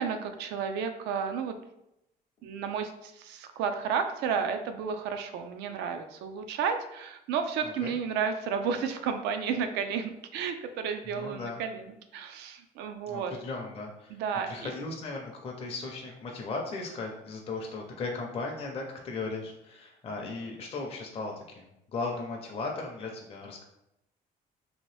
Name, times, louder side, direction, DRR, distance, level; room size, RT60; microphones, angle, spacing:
voice 1, 0.0-1.6 2.4-13.3 14.1-14.7, right 6 dB, 85° right, 7 dB, 0.4 m, -32 dB
voice 2, 7.6-7.9 11.1-11.6 13.1-14.2 14.5-23.6, left 3 dB, 35° left, 0 dB, 0.5 m, -37 dB
2.8 x 2.6 x 3.1 m, 0.85 s
cardioid pair, 110°, 17 cm